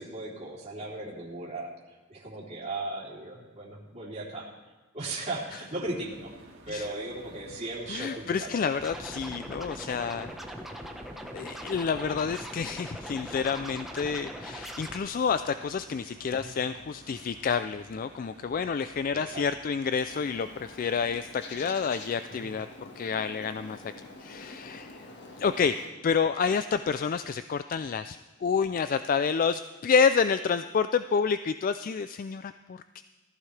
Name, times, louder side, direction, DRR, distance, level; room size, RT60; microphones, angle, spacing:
voice 1, 0.0-1.7 2.1-4.5 4.9-6.3 6.7-8.8 16.4-16.5 19.1-19.4 22.3-22.5, right 2 dB, 35° right, -4 dB, 3.2 m, -37 dB
sound 1, 5.8-21.2, right 2 dB, 90° right, 2.2 m, -53 dB
voice 2, 7.9-10.3 11.3-22.7 23.0-23.8 24.2-25.1 25.4-33.0, left 6 dB, 45° left, 11 dB, 0.3 m, -29 dB
Scratching (performance technique), 8.8-15.0, equal, ahead, 1.1 m, -41 dB
Bird, 19.9-25.9, left 2 dB, 60° left, 1.5 m, -47 dB
18.5 x 14.0 x 3.3 m, 1.2 s
head